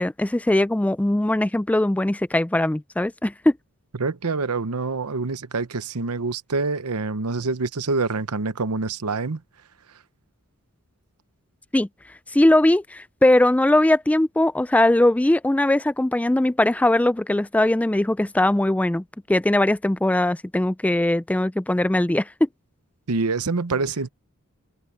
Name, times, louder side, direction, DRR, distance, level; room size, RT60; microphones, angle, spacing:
voice 1, 0.0-3.6 11.7-11.9 12.3-22.5, left 1 dB, 5° left, 0.3 m, -20 dB
voice 2, 4.0-9.4 23.1-24.1, right 3 dB, 90° right, 0.9 m, -26 dB
head